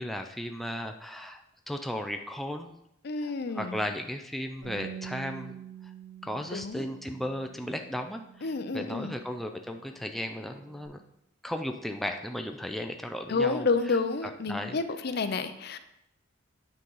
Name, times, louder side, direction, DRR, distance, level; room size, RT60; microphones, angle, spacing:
voice 1, 0.0-2.7 3.2-5.6 5.8-5.9 6.2-11.0 11.4-14.8 15.1-15.3, equal, ahead, 4 dB, 0.4 m, -36 dB
voice 2, 3.0-3.8 6.5-6.8 8.4-9.1 13.3-15.8, left 4 dB, 55° left, 10 dB, 0.5 m, -29 dB
Bass guitar, 4.6-10.9, right 8 dB, 80° right, 3.5 m, -47 dB
9.1 x 4.0 x 5.5 m, 0.80 s
head